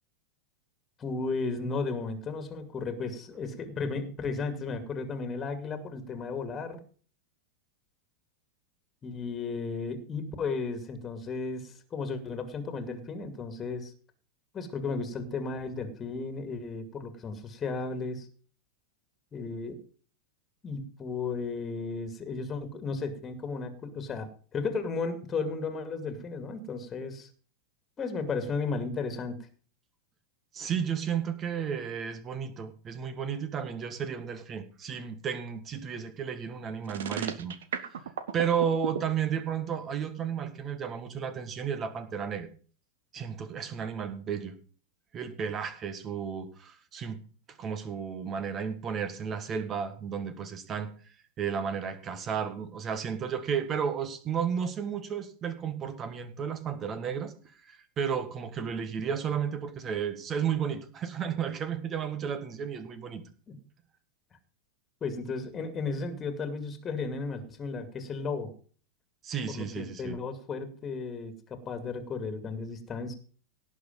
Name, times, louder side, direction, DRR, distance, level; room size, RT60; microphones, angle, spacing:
voice 1, 1.0-6.8 9.0-13.9 14.5-18.3 19.3-19.8 20.6-27.3 28.0-29.4 63.5-63.6 65.0-68.5 69.5-73.1, left 4 dB, 25° left, 9 dB, 2.3 m, -34 dB
voice 2, 30.5-37.6 38.3-42.5 43.1-44.6 45.1-47.2 47.6-50.9 51.4-57.3 57.6-63.2 69.2-70.2, right 7 dB, 25° right, 12 dB, 1.7 m, -33 dB
sound 1, 36.8-39.0, right 8 dB, 60° right, 1.2 m, -33 dB
17.5 x 6.4 x 5.4 m, 0.40 s
figure-of-eight pair, 90°, 0 cm